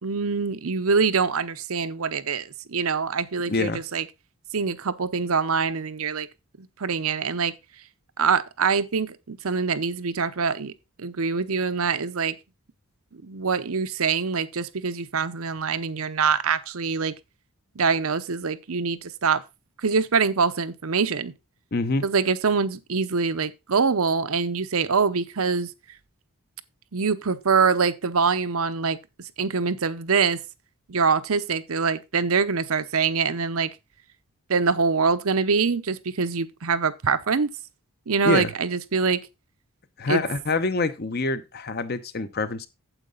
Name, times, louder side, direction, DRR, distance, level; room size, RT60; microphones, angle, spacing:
voice 1, 0.0-4.0 4.5-6.3 6.6-7.5 8.2-10.7 11.0-12.3 13.2-17.1 17.8-19.4 19.8-21.3 22.0-25.7 26.9-29.0 29.4-30.4 30.9-33.7 34.5-37.5 38.1-39.2 40.1-40.2, right 5 dB, 70° right, 0.7 m, -24 dB
voice 2, 3.5-3.8 21.7-22.1 38.2-38.5 40.0-42.7, left 3 dB, 45° left, 0.8 m, -26 dB
9.0 x 7.8 x 3.8 m
head